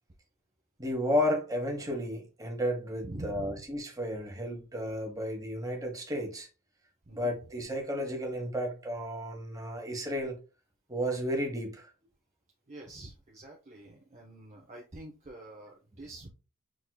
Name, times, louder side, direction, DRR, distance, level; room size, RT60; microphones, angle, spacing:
voice 1, 0.8-6.5 7.1-10.4 10.9-11.9, equal, 15° right, 1.1 m, -33 dB
voice 2, 3.0-3.6 7.1-7.3 12.7-16.3, right 1 dB, 30° right, 0.7 m, -45 dB
6.1 x 3.5 x 2.3 m
head